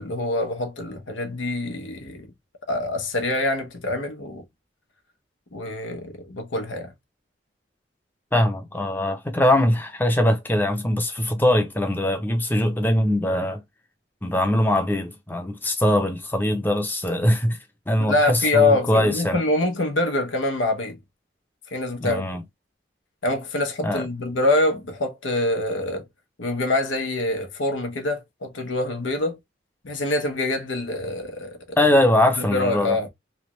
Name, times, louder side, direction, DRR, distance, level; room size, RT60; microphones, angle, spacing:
voice 1, 0.0-2.3 2.7-4.4 5.5-6.9 18.0-21.0 21.7-22.2 23.2-26.1 26.4-29.4 29.8-31.8 32.4-33.1, left 2 dB, 90° left, 1.0 m, -25 dB
voice 2, 8.3-13.6 14.2-17.6 17.9-19.4 22.0-22.4 23.8-24.1 31.8-33.0, left 1 dB, 10° left, 0.6 m, -22 dB
3.3 x 2.4 x 3.0 m
head